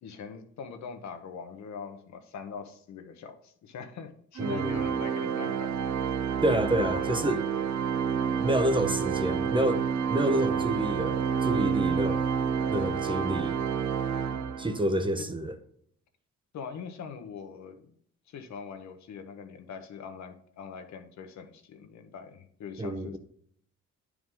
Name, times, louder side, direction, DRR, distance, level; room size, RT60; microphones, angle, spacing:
voice 1, 0.0-5.9 6.7-7.1 8.5-8.7 15.2-15.3 16.5-17.9 18.3-23.2, left 6 dB, 65° left, 1.1 m, -42 dB
voice 2, 4.4-4.8 6.4-7.4 8.4-12.3 12.7-13.6 14.6-15.5 22.8-23.2, right 1 dB, 15° right, 0.7 m, -28 dB
Organ, 4.4-15.0, right 7 dB, 65° right, 0.6 m, -29 dB
9.6 x 4.8 x 3.8 m
cardioid pair, 90°, 30 cm